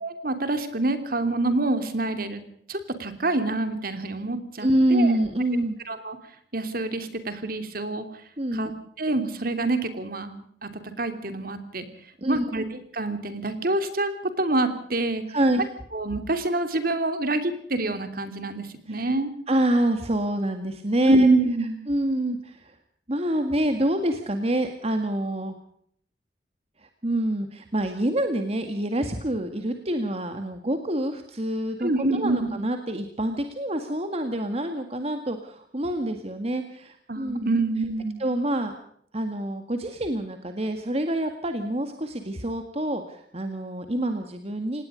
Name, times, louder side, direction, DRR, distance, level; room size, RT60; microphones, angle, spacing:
voice 1, 0.0-2.4 2.7-5.1 5.9-6.2 6.5-8.1 8.5-8.7 9.0-11.9 12.3-15.2 15.9-19.3 21.1-21.8 31.8-32.5 37.1-38.2, right 2 dB, 50° right, 9 dB, 3.0 m, -26 dB
voice 2, 4.6-5.8 8.4-8.7 12.2-12.6 15.3-15.7 18.9-19.0 19.5-21.3 21.9-22.8 23.1-25.5 26.8-37.6 38.2-38.7 39.1-44.8, right 1 dB, 35° right, 6 dB, 1.9 m, -26 dB
26.5 x 19.0 x 5.1 m, 0.65 s
head